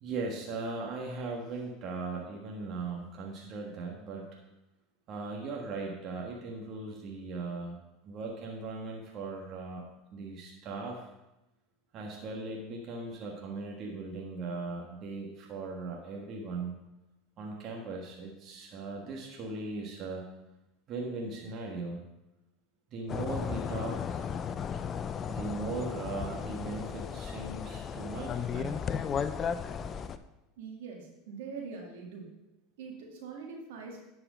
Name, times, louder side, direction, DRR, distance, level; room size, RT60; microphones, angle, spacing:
voice 1, 0.0-4.4 5.1-9.8 10.1-11.1 11.9-16.8 17.4-20.2 20.9-22.0 22.9-24.3 25.3-28.8, right 3 dB, 45° right, -1 dB, 1.4 m, -38 dB
sound 1, 23.1-30.2, left 7 dB, 35° left, 0.5 m, -35 dB
voice 2, 30.6-32.3 32.8-34.0, right 5 dB, 75° right, 0 dB, 1.9 m, -43 dB
10.0 x 4.9 x 5.1 m, 0.95 s
hypercardioid pair, 90°, 0 cm